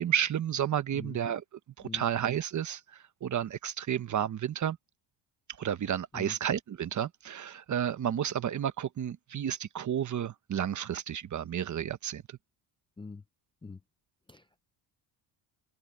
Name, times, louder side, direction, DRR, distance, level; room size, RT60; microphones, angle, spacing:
voice 1, 0.0-1.4 1.8-4.8 5.6-12.4, right 9 dB, 40° right, 1.1 m, -31 dB
voice 2, 14.3-14.6, left 4 dB, 10° left, 0.5 m, -43 dB
open air
cardioid pair, 150°, 46 cm